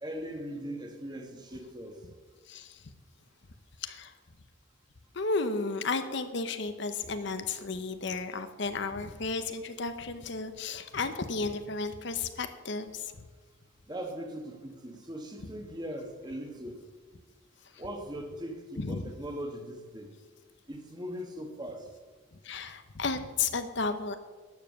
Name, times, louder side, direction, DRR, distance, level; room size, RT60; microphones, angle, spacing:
voice 1, 0.0-2.0 13.9-16.8 17.8-20.1 20.7-21.9, equal, 20° right, 4 dB, 1.5 m, -40 dB
voice 2, 2.5-2.8 3.8-4.1 5.1-13.1 18.8-19.0 22.4-24.2, left 4 dB, 55° left, 9 dB, 0.8 m, -33 dB
12.0 x 7.3 x 7.4 m, 1.4 s
head